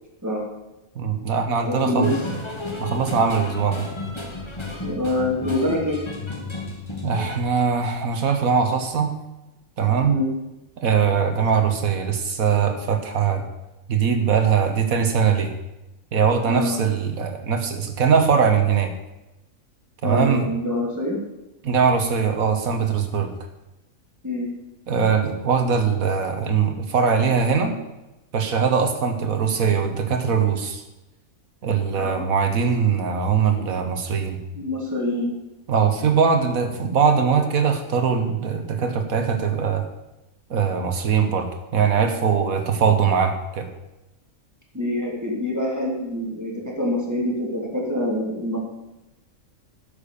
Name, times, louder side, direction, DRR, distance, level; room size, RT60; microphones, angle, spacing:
voice 1, 1.0-2.2 2.8-3.8 7.0-9.1 9.8-10.2 10.8-13.5 13.9-15.5 16.1-18.9 20.0-20.5 21.6-23.3 24.9-27.8 28.3-30.8 31.6-34.4 35.7-39.8 40.5-43.7, right 6 dB, 80° right, 6 dB, 1.8 m, -21 dB
voice 2, 1.6-2.1 4.8-6.0 10.1-10.3 16.4-16.8 20.0-21.2 24.2-24.5 32.0-32.3 34.5-35.3 44.7-48.6, left 1 dB, 10° right, -3 dB, 3.2 m, -25 dB
sound 1, 2.0-7.4, left 3 dB, 20° left, 1.4 m, -33 dB
11.5 x 7.1 x 7.0 m, 0.98 s
omnidirectional pair, 1.5 m